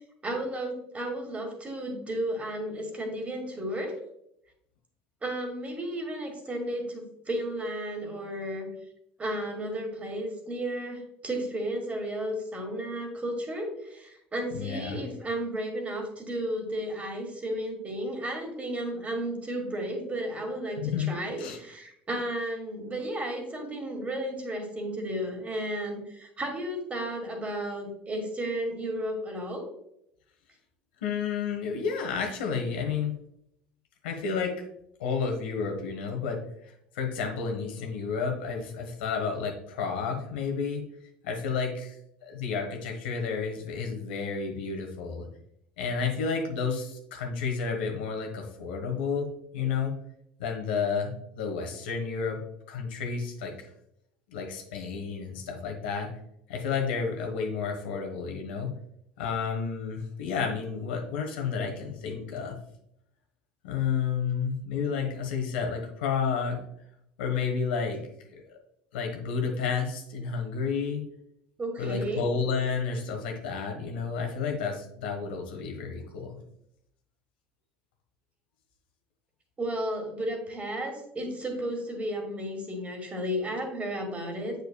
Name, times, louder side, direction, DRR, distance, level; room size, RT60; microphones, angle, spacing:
voice 1, 0.0-3.9 5.2-8.7 9.2-29.6 71.6-72.2 79.6-84.5, right 1 dB, 25° right, 3 dB, 2.0 m, -33 dB
voice 2, 14.5-15.0 20.8-21.1 21.4-21.6 31.0-33.1 34.0-34.5 35.0-40.8 41.2-41.9 42.2-45.3 45.8-50.0 50.4-52.4 52.7-53.5 54.3-56.1 56.5-58.7 59.2-62.6 63.6-66.6 67.2-68.0 68.3-68.6 68.9-71.0 71.8-76.4, left 5 dB, 85° left, 3 dB, 1.3 m, -31 dB
7.0 x 6.5 x 2.2 m, 0.75 s
hypercardioid pair, 85°, 5 cm